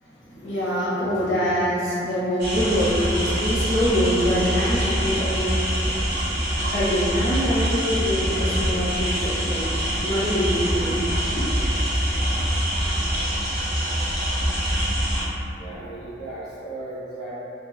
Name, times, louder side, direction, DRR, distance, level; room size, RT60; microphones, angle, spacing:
voice 1, 0.0-6.2 6.7-9.7 10.0-11.6, equal, 90° left, -9 dB, 0.9 m, -25 dB
sound 1, 2.4-15.2, equal, 55° right, 0.7 m, -24 dB
voice 2, 15.6-17.3, right 2 dB, 20° left, -17 dB, 0.6 m, -36 dB
3.1 x 2.1 x 2.2 m, 2.7 s
head